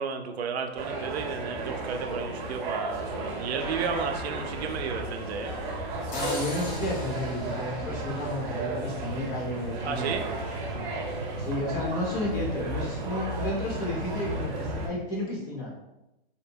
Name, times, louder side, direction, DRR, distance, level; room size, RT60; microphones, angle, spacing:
voice 1, 0.0-5.5 9.8-10.3, right 6 dB, 85° right, 6 dB, 0.5 m, -33 dB
sound 1, 0.8-14.9, right 2 dB, 45° right, 0.6 m, -33 dB
sound 2, 6.1-9.0, left 1 dB, 80° left, 0.9 m, -41 dB
voice 2, 6.1-10.2 10.7-10.9 11.4-15.8, left 1 dB, 20° left, -3 dB, 0.3 m, -32 dB
2.7 x 2.1 x 2.6 m, 0.93 s
hypercardioid pair, 150°, 31 cm